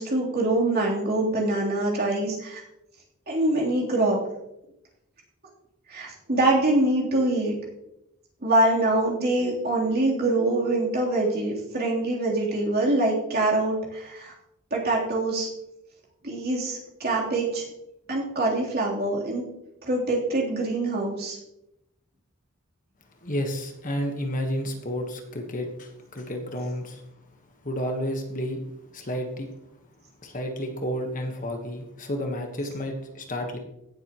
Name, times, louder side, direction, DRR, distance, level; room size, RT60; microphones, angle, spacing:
voice 1, 0.0-2.6 3.3-4.2 5.9-7.5 8.4-14.3 14.7-15.5 16.2-17.6 18.1-19.4 19.8-21.4, right 2 dB, 45° right, -4 dB, 3.4 m, -24 dB
voice 2, 23.2-27.0 27.6-28.6 28.9-29.5 30.2-33.6, equal, 35° left, 3 dB, 1.3 m, -31 dB
17.0 x 7.7 x 3.0 m, 0.86 s
head